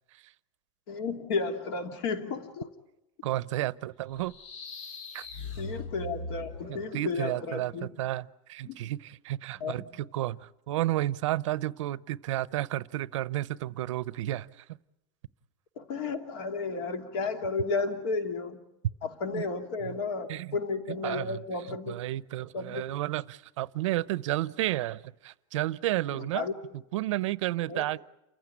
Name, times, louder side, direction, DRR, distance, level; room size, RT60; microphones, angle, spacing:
voice 1, 0.9-2.7 5.6-7.9 8.6-8.8 9.6-9.9 15.8-18.6 19.0-22.0 22.5-22.8 26.1-26.5 27.7-27.8, left 4 dB, 50° left, 6 dB, 2.9 m, -33 dB
voice 2, 3.2-4.3 5.1-5.3 6.7-14.6 19.3-19.5 19.9-20.0 20.3-20.6 21.0-21.4 21.7-26.5 26.9-28.0, right 15 dB, 80° right, 18 dB, 0.8 m, -32 dB
sound 1, 4.1-7.0, left 2 dB, 85° left, 4.6 m, -40 dB
29.0 x 15.5 x 9.8 m, 0.92 s
supercardioid pair, 175°, 16 cm